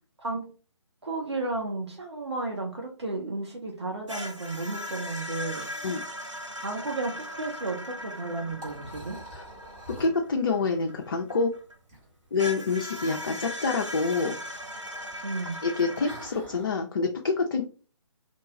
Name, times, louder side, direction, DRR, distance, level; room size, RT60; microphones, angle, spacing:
voice 1, 1.0-5.7 6.6-9.2 15.2-15.6, right 2 dB, 65° right, 1 dB, 0.9 m, -33 dB
sound 1, 4.1-11.8 12.4-16.3, equal, 85° right, 0.9 m, -39 dB
Liquid, 8.0-16.7, right 1 dB, 15° right, 1.0 m, -48 dB
voice 2, 10.0-11.5 12.3-14.4 15.6-17.6, left 4 dB, 45° left, 2 dB, 0.4 m, -27 dB
3.1 x 2.2 x 3.9 m, 0.38 s
figure-of-eight pair, 140°, 16 cm